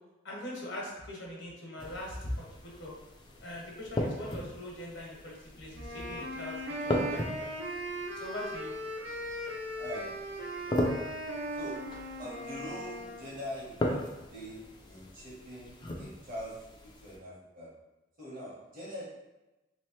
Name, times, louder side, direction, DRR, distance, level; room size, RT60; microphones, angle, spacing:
voice 1, 0.2-2.9 3.4-7.5 8.1-8.7, left 1 dB, 85° left, -3 dB, 1.1 m, -41 dB
sound 1, 1.8-17.2, left 1 dB, 25° left, 0.4 m, -38 dB
sound 2, 5.7-13.2, right 1 dB, 75° right, 0.7 m, -38 dB
voice 2, 9.7-10.1 10.7-10.9 11.2-11.8 12.2-14.0 14.3-17.7 18.2-19.0, equal, 45° right, -5 dB, 1.2 m, -43 dB
3.1 x 3.1 x 3.1 m, 1.0 s
head